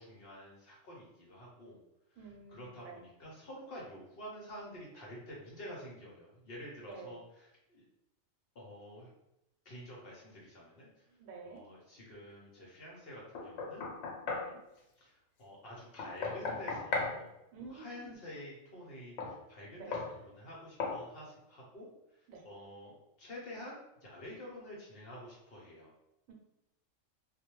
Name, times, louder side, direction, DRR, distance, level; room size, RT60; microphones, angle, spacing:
voice 1, 0.0-1.8 2.1-7.8 8.5-9.1 9.6-11.1 11.5-13.8 15.0-17.3 17.7-19.9 20.3-22.9 23.2-25.9, equal, 55° left, -4 dB, 0.8 m, -49 dB
voice 2, 2.2-3.0 6.9-7.2 11.2-11.7 14.2-14.6 17.5-18.2 19.8-20.0 22.3-22.5 26.3-26.4, right 4 dB, 80° right, 1 dB, 1.0 m, -49 dB
Knock, 13.3-14.5 16.0-17.2 19.2-19.3 19.9-20.1 20.8-21.0, left 4 dB, 80° left, 1.0 m, -36 dB
2.3 x 2.1 x 2.9 m, 0.87 s
omnidirectional pair, 1.4 m